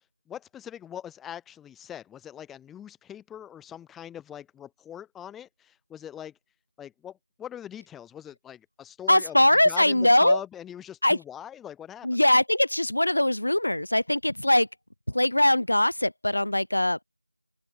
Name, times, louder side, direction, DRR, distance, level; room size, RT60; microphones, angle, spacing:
voice 1, 0.3-6.3 6.8-9.4 9.7-12.1, left 10 dB, ahead, 0.4 m, -42 dB
voice 2, 9.1-10.4 11.0-11.2 12.0-14.7 15.1-17.0, left 1 dB, 70° left, 0.7 m, -21 dB
open air
figure-of-eight pair, 175°, 0 cm